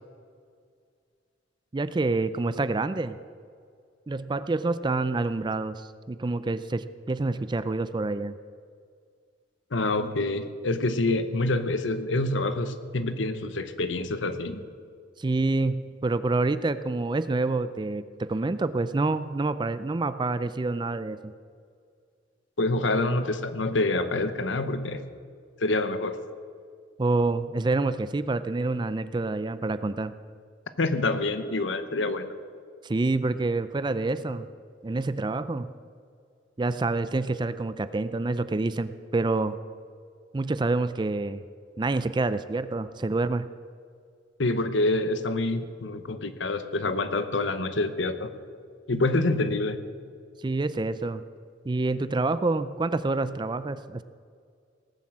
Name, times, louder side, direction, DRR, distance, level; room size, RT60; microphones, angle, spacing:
voice 1, 1.7-3.2 4.1-8.4 15.2-21.3 27.0-30.1 32.8-34.5 34.8-35.7 36.6-39.6 40.3-41.4 41.8-43.5 50.4-51.2 51.7-54.0, right 3 dB, 25° right, 13 dB, 0.4 m, -27 dB
voice 2, 9.7-14.6 22.6-25.0 25.6-26.2 30.8-32.3 44.4-48.3 48.9-49.8, left 2 dB, 70° left, 11 dB, 0.9 m, -26 dB
18.0 x 7.6 x 7.4 m, 2.1 s
head